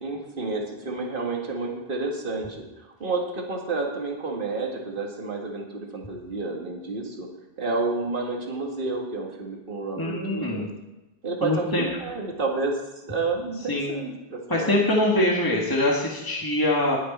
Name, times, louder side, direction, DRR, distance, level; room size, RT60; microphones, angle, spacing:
voice 1, 0.0-7.3 7.6-10.7 11.2-14.8, right 3 dB, 60° right, 1 dB, 1.9 m, -30 dB
voice 2, 10.0-10.7 11.4-11.8 13.7-13.9 14.5-17.0, left 1 dB, 20° left, -3 dB, 1.8 m, -23 dB
20.0 x 6.6 x 4.2 m, 1.0 s
omnidirectional pair, 1.0 m